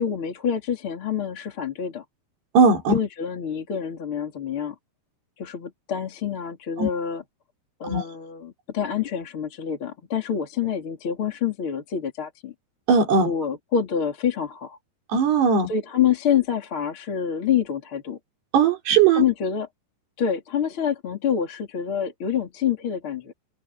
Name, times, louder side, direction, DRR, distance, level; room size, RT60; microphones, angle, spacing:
voice 1, 0.0-2.0 2.9-4.7 5.4-7.2 7.8-12.5 13.2-14.8 15.7-18.2 19.1-19.7 20.2-23.3, left 8 dB, 35° left, 3.3 m, -26 dB
voice 2, 2.5-3.0 6.8-6.9 7.9-8.0 12.9-13.3 15.1-15.7 18.5-19.2, right 5 dB, 85° right, 6.4 m, -18 dB
omnidirectional pair, 4.6 m